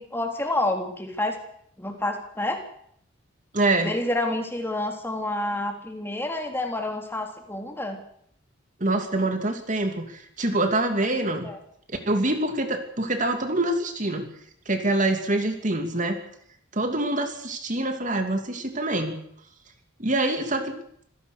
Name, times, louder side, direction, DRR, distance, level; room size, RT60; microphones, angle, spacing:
voice 1, 0.0-1.4 1.8-2.6 3.8-8.0 11.4-11.6, left 1 dB, 10° left, 3 dB, 3.7 m, -28 dB
voice 2, 3.5-3.9 8.8-11.5 11.9-14.3 14.7-16.2 16.7-19.2 20.0-20.7, right 2 dB, 40° right, 6 dB, 2.8 m, -25 dB
26.5 x 17.0 x 6.7 m, 0.66 s
head